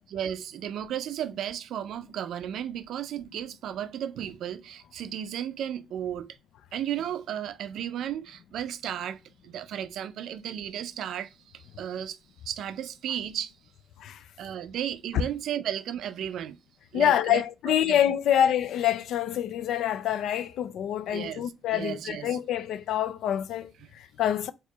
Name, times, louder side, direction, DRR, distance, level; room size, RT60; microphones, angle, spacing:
voice 1, 0.0-6.3 6.7-12.2 12.5-13.5 14.4-16.6 16.9-17.4 17.7-18.0 21.1-21.4 21.7-22.3, right 10 dB, 75° right, 0.4 m, -34 dB
voice 2, 16.9-24.5, left 10 dB, 80° left, 0.4 m, -26 dB
4.4 x 2.5 x 2.9 m
cardioid pair, 90°, 0 cm